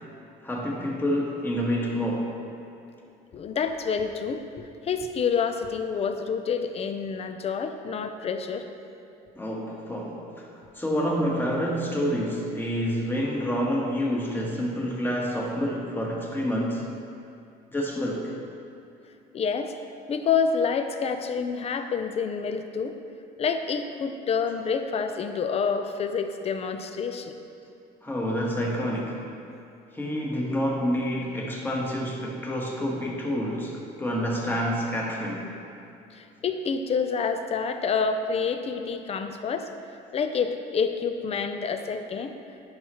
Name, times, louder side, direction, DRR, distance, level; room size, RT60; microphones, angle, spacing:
voice 1, 0.4-2.3 9.3-10.5 10.7-16.8 17.7-18.3 28.0-29.2 29.9-35.5, equal, 10° left, -2 dB, 1.3 m, -28 dB
voice 2, 3.3-8.6 19.3-19.7 20.1-22.9 23.4-27.3 36.1-39.7 40.1-42.3, left 5 dB, 35° left, 7 dB, 0.5 m, -28 dB
10.5 x 5.7 x 3.0 m, 2.6 s
cardioid pair, 110°, 17 cm